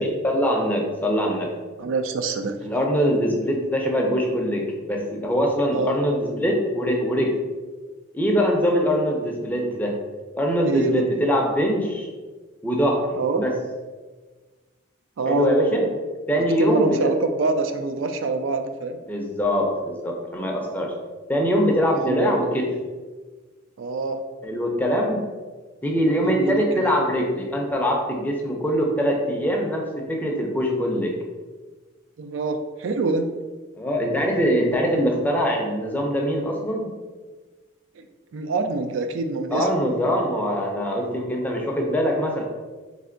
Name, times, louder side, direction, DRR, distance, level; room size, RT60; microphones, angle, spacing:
voice 1, 0.0-1.5 2.6-7.3 8.1-10.0 10.4-12.1 12.6-13.1 13.4-13.5 15.2-15.8 16.3-17.0 19.1-20.9 21.3-22.7 24.4-25.2 25.8-31.1 33.8-36.9 39.5-42.4, equal, 10° left, 0 dB, 0.5 m, -23 dB
voice 2, 1.8-2.6 5.7-6.0 10.7-11.0 13.2-13.5 15.2-15.6 16.6-19.0 22.0-22.4 23.8-24.3 26.2-26.9 32.2-33.3 38.0-38.1 38.3-39.7, right 3 dB, 70° right, 7 dB, 0.4 m, -25 dB
3.4 x 3.3 x 3.8 m, 1.3 s
head